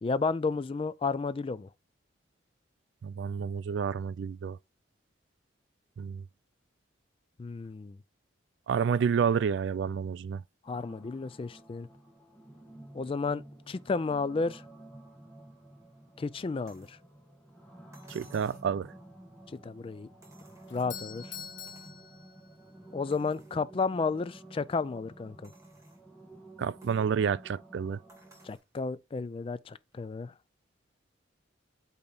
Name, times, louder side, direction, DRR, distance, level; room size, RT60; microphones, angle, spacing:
voice 1, 0.0-1.7 7.4-8.0 10.7-11.9 12.9-14.6 16.2-17.0 19.6-20.1 20.7-21.3 22.9-25.5 28.4-30.3, left 4 dB, 30° left, 0.3 m, -32 dB
voice 2, 3.0-4.6 6.0-6.2 8.7-10.4 18.1-18.9 26.6-28.0, right 7 dB, 65° right, 0.3 m, -29 dB
sound 1, 10.7-28.6, right 1 dB, 5° left, 1.3 m, -52 dB
sound 2, 16.7-17.0 17.9-18.7 20.2-21.0 21.7-22.0 22.5-22.6 23.1-23.6 24.2-24.3 25.4-26.1 26.8-27.1 28.1-28.7 29.9-30.0, right 2 dB, 15° right, 1.4 m, -59 dB
Doorbell, 20.7-22.8, left 8 dB, 65° left, 1.1 m, -45 dB
8.6 x 3.0 x 3.9 m
head